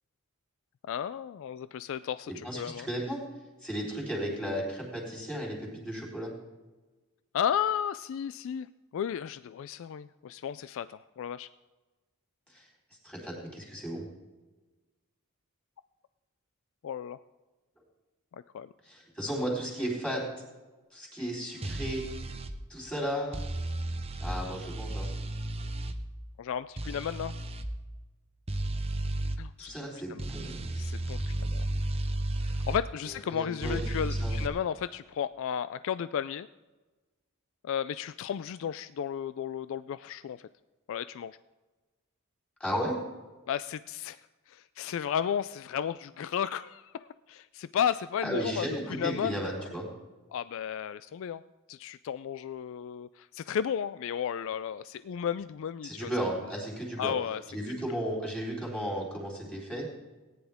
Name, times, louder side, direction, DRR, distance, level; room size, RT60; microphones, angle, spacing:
voice 1, 0.8-2.9 7.3-8.7 8.9-11.5 16.8-17.2 18.3-18.7 26.4-27.3 29.4-29.7 30.1-30.3 30.8-31.7 32.4-36.5 37.6-40.5 40.9-41.4 43.5-44.2 44.5-49.5 50.3-51.4 51.7-56.1 57.0-57.4, left 8 dB, 65° left, 14 dB, 0.3 m, -33 dB
voice 2, 2.3-3.2 3.6-6.3 12.5-12.7 13.0-14.1 18.8-20.2 20.9-22.0 22.7-23.4 24.2-25.1 29.6-30.6 33.1-33.8 34.2-34.4 42.6-43.0 48.2-49.9 55.8-57.1 57.5-59.9, equal, 5° left, -3 dB, 3.8 m, -34 dB
sound 1, 21.6-22.5 23.3-26.0 26.8-27.7 28.5-29.4 30.2-32.8 33.6-34.5, right 1 dB, 25° right, 0.7 m, -33 dB
18.0 x 10.0 x 3.5 m, 1.2 s
head